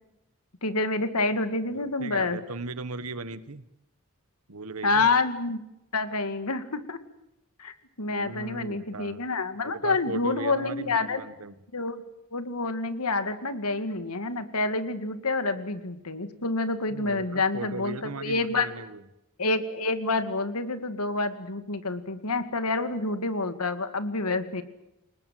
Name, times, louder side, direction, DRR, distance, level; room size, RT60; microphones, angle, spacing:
voice 1, 0.6-2.4 4.8-5.6 5.9-7.0 7.6-11.2 11.7-12.0 12.3-18.7 19.4-24.6, left 3 dB, 90° left, 10 dB, 2.2 m, -28 dB
voice 2, 1.7-3.6 4.5-5.1 8.1-9.2 9.6-11.6 16.9-19.0, right 3 dB, 80° right, 14 dB, 1.5 m, -37 dB
29.0 x 19.5 x 7.8 m, 0.89 s
head